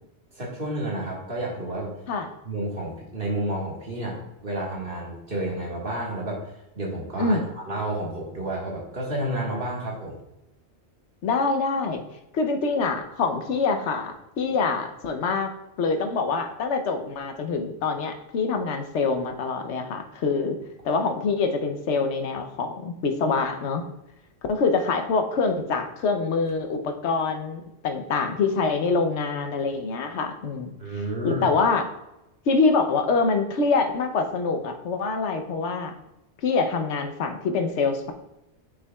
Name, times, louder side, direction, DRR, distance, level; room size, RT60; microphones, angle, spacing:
voice 1, 0.3-1.9 2.4-10.2 30.8-31.5, right 1 dB, 50° right, -3 dB, 1.9 m, -30 dB
voice 2, 11.2-12.0 12.3-15.5 15.8-20.6 20.8-23.8 24.5-30.7 31.2-31.9 32.5-35.9 36.4-38.1, left 4 dB, 80° left, 6 dB, 1.1 m, -25 dB
9.4 x 6.0 x 2.3 m, 0.92 s
omnidirectional pair, 1.2 m